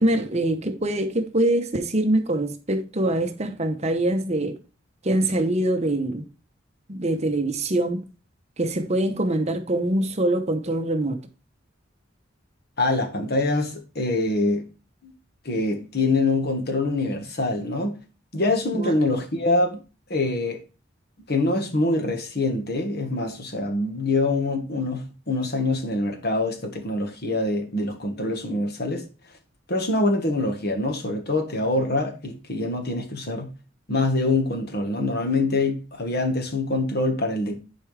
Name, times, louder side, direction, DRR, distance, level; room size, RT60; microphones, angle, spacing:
voice 1, 0.0-4.5 5.0-6.2 6.9-8.0 8.6-11.2 18.7-18.9, right 1 dB, 35° right, 0.9 m, -24 dB
voice 2, 12.8-14.6 15.0-15.1 15.4-17.9 18.3-19.8 20.1-20.6 21.3-29.0 29.7-33.5 33.9-37.6, left 2 dB, 50° left, 1.5 m, -24 dB
10.5 x 4.8 x 3.3 m
head